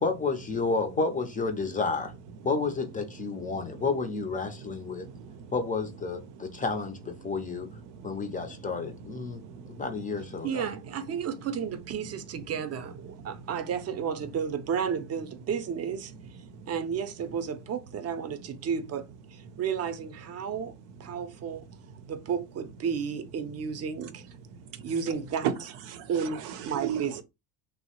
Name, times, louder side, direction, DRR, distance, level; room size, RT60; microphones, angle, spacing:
voice 1, 0.0-2.1 2.4-5.1 5.5-7.7 8.0-9.4 9.7-10.7, left 4 dB, 20° left, 0.4 m, -30 dB
voice 2, 3.2-3.8 4.6-5.5 6.5-6.6 7.2-7.3 7.8-9.8 10.4-10.5 13.3-13.4 16.5-16.7 19.5-19.6 24.5-24.9 25.4-25.5 25.9-27.2, right 9 dB, 85° right, 0.6 m, -38 dB
voice 3, 10.4-16.1 16.7-20.7 21.0-21.7 22.1-24.2 24.8-25.7 26.1-27.2, right 7 dB, 35° right, 0.5 m, -32 dB
2.9 x 2.0 x 2.8 m
cardioid pair, 100°, 42 cm